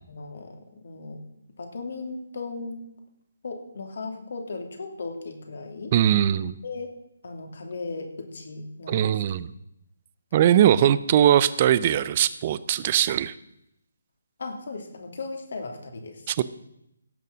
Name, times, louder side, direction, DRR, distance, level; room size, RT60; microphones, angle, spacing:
voice 1, 0.1-1.2 1.6-2.8 3.4-5.9 6.6-6.9 7.2-9.2 14.4-16.2, left 3 dB, 60° left, 3 dB, 2.8 m, -36 dB
voice 2, 5.9-6.6 8.9-9.5 10.3-13.3 16.3-16.4, right 10 dB, 30° right, 17 dB, 0.6 m, -20 dB
17.0 x 6.6 x 6.3 m, 0.81 s
figure-of-eight pair, 150°, 0 cm